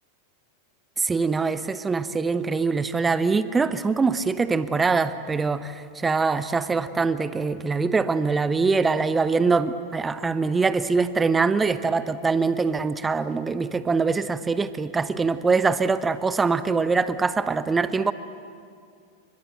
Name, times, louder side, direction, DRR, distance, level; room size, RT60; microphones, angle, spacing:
voice 1, 1.0-18.1, right 4 dB, 15° right, 14 dB, 0.9 m, -23 dB
29.5 x 25.5 x 7.9 m, 2.3 s
figure-of-eight pair, 90°, 0 cm